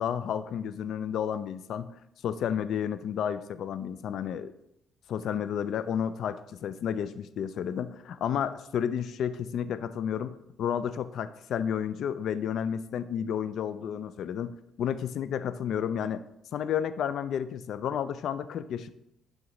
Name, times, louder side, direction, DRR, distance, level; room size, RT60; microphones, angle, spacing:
voice 1, 0.0-1.9 2.2-4.5 5.1-16.2 16.5-18.9, left 8 dB, 70° left, 13 dB, 0.3 m, -31 dB
11.0 x 3.7 x 3.0 m, 0.83 s
cardioid pair, 90°, 0 cm